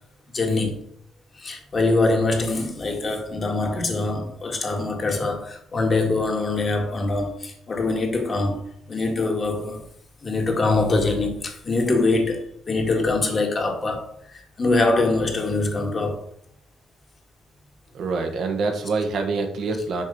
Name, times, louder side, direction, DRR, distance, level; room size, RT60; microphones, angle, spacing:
voice 1, 0.3-0.8 1.4-8.6 8.9-9.8 10.2-16.2, left 3 dB, 40° left, 2.0 m, -23 dB
voice 2, 17.9-20.0, right 3 dB, 70° right, 1.4 m, -25 dB
6.2 x 4.7 x 5.4 m
cardioid pair, 90°, 0 cm